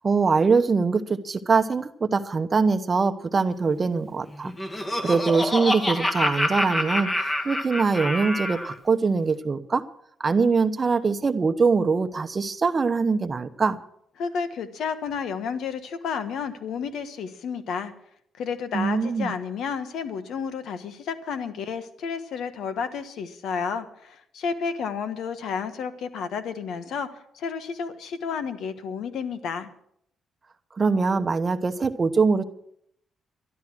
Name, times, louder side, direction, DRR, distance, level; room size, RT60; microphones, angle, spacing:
voice 1, 0.0-9.8 10.2-13.8 18.7-19.3 30.8-32.4, right 4 dB, 35° right, 10 dB, 0.9 m, -23 dB
Laughter, 4.3-8.7, left 1 dB, 20° left, 1.7 m, -27 dB
voice 2, 14.2-17.9 18.4-29.7, left 6 dB, 75° left, 10 dB, 1.3 m, -31 dB
12.5 x 12.0 x 6.2 m, 0.71 s
cardioid pair, 90°, 0 cm